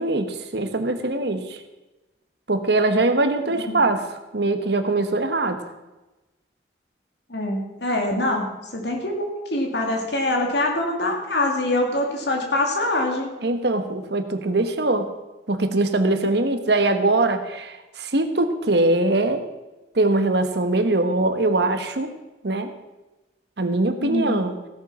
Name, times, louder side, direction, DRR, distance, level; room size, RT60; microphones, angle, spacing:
voice 1, 0.0-1.6 2.5-4.1 4.3-5.6 13.4-15.1 15.5-19.4 19.9-22.1 22.4-22.7 23.6-24.6, right 2 dB, 65° right, 8 dB, 1.2 m, -22 dB
voice 2, 7.3-8.5 8.7-13.3 24.0-24.4, left 1 dB, 65° left, 2 dB, 2.6 m, -24 dB
16.0 x 7.3 x 6.2 m, 1.1 s
head